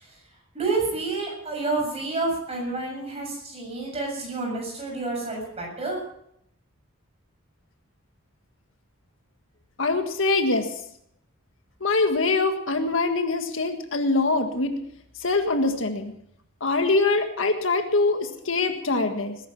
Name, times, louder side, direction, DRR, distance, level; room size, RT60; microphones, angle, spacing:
voice 1, 0.5-6.0, right 3 dB, 30° right, -1 dB, 7.2 m, -29 dB
voice 2, 9.8-10.7 11.8-14.8 15.2-16.1 16.6-19.4, left 3 dB, 70° left, 6 dB, 1.7 m, -23 dB
20.0 x 11.0 x 5.9 m, 0.71 s
head